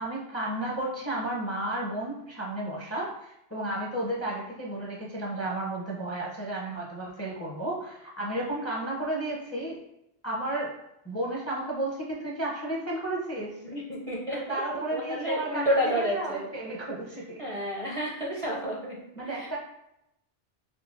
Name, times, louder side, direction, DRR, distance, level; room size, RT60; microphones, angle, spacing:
voice 1, 0.0-9.9 10.2-13.6 14.3-17.4 18.3-18.4 19.1-19.6, right 1 dB, 20° left, -3 dB, 0.4 m, -33 dB
voice 2, 13.6-16.5 17.4-19.0 19.3-19.5, equal, 45° right, -4 dB, 0.5 m, -30 dB
3.7 x 3.2 x 2.4 m, 0.83 s
omnidirectional pair, 1.1 m